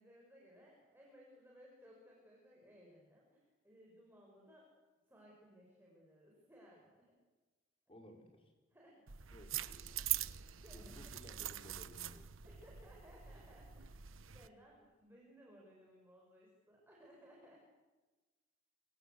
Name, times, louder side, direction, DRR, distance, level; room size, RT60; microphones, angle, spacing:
voice 1, 0.0-4.7 5.1-7.1 8.7-9.0 10.0-11.0 12.4-17.6, equal, 10° right, -3 dB, 6.5 m, -62 dB
voice 2, 7.9-8.5 9.3-9.9 10.7-12.5, equal, 25° left, 2 dB, 5.3 m, -57 dB
sound 1, 9.1-14.5, right 12 dB, 85° right, 1.1 m, -43 dB
28.5 x 25.5 x 8.1 m, 1.2 s
head